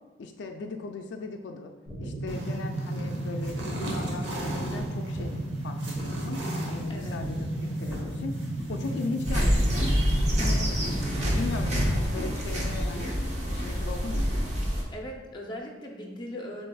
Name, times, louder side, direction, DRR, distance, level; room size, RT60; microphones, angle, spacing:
voice 1, 0.2-1.7 2.0-5.4 5.6-6.4 6.7-8.4 8.7-10.0 10.4-14.3, left 3 dB, 70° left, 5 dB, 0.3 m, -38 dB
sound 1, 1.9-11.9, right 1 dB, 5° right, 1.0 m, -33 dB
sound 2, 2.3-14.3, right 1 dB, 75° right, 1.0 m, -41 dB
voice 2, 6.9-7.2 14.9-16.7, equal, 25° left, 0 dB, 0.6 m, -39 dB
sound 3, 9.2-14.8, equal, 40° right, 0.8 m, -27 dB
6.6 x 3.4 x 2.3 m, 1.2 s
head